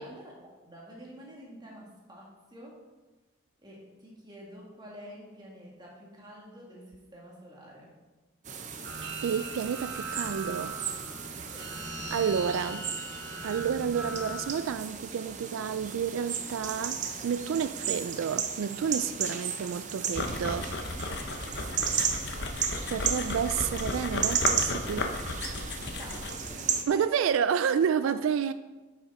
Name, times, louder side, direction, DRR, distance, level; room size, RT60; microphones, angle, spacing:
voice 1, 0.0-2.9 3.6-8.0 11.5-11.8 25.7-27.3 28.0-28.5, equal, 20° right, 2.0 m, -49 dB
sound 1, 8.4-26.8, right 7 dB, 40° right, 0.7 m, -35 dB
sound 2, 8.8-14.5, right 2 dB, 60° right, 1.9 m, -40 dB
voice 2, 9.2-10.8 11.4-11.5 12.1-12.9 13.4-20.7 22.9-25.1 26.9-28.5, right 7 dB, 90° right, 0.3 m, -30 dB
sound 3, 20.1-26.5, left 2 dB, 55° left, 0.8 m, -34 dB
9.9 x 6.2 x 4.3 m
head